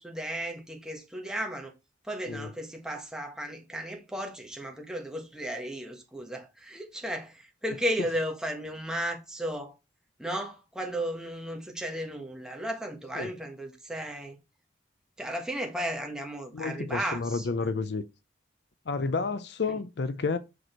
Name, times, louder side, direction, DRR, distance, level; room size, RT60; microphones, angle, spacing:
voice 1, 0.0-1.7 2.0-9.7 10.2-14.4 15.2-17.7 19.7-19.8, right 1 dB, 5° right, 1.4 m, -34 dB
voice 2, 16.5-18.0 18.9-20.4, left 4 dB, 65° left, 0.5 m, -30 dB
6.2 x 5.0 x 4.4 m
head